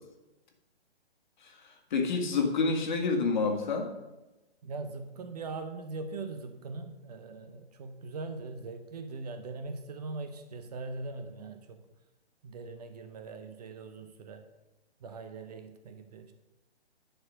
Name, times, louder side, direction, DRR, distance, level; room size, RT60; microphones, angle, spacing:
voice 1, 1.9-3.9, left 4 dB, 45° left, 3 dB, 1.7 m, -28 dB
voice 2, 4.6-11.8 12.4-14.4 15.0-16.3, right 3 dB, 40° right, 8 dB, 0.8 m, -41 dB
10.5 x 4.6 x 6.1 m, 1.0 s
figure-of-eight pair, 135°, 33 cm